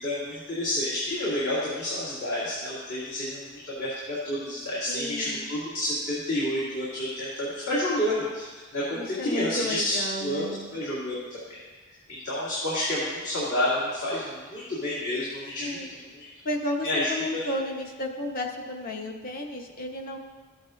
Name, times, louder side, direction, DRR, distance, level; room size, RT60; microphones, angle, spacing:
voice 1, 0.0-8.5 8.7-11.2 12.1-16.3 16.8-17.4, left 1 dB, 60° left, -9 dB, 2.4 m, -29 dB
voice 2, 4.8-5.4 8.9-10.7 15.6-15.9 16.4-20.2, left 1 dB, 40° left, 3 dB, 1.0 m, -33 dB
14.0 x 8.0 x 2.6 m, 1.4 s
head